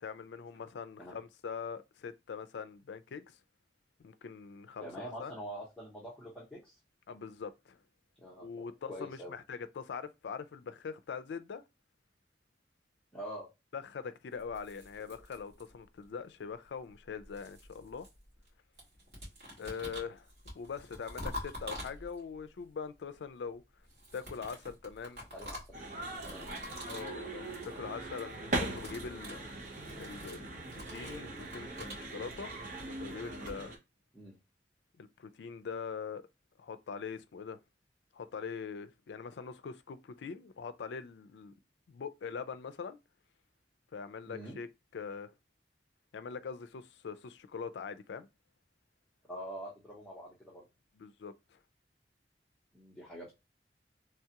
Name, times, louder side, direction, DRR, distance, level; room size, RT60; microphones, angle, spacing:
voice 1, 0.0-3.2 4.0-5.3 7.1-7.8 8.4-11.6 13.7-18.1 19.6-20.3 20.5-23.6 24.1-25.2 26.8-29.4 30.0-32.5 32.8-33.7 35.0-36.2 36.6-37.6 38.1-41.5 41.9-43.0 43.9-44.7 44.9-45.3 46.1-48.3 51.0-51.3, left 6 dB, 85° left, 0.4 m, -42 dB
voice 2, 4.8-6.7 8.2-9.3 13.1-13.5 15.1-15.2 19.7-19.8 25.3-25.8 26.2-26.5 34.1-34.3 44.3-44.6 49.3-50.6 52.7-53.3, equal, 5° left, 0.8 m, -45 dB
sound 1, 14.4-16.0 16.9-18.5 18.8-22.4 23.8-27.2 27.4-27.8 28.0-28.3 28.6-32.0, left 1 dB, 70° right, 1.9 m, -47 dB
sound 2, 25.7-33.8, right 2 dB, 45° right, 0.8 m, -40 dB
3.2 x 2.2 x 2.8 m
head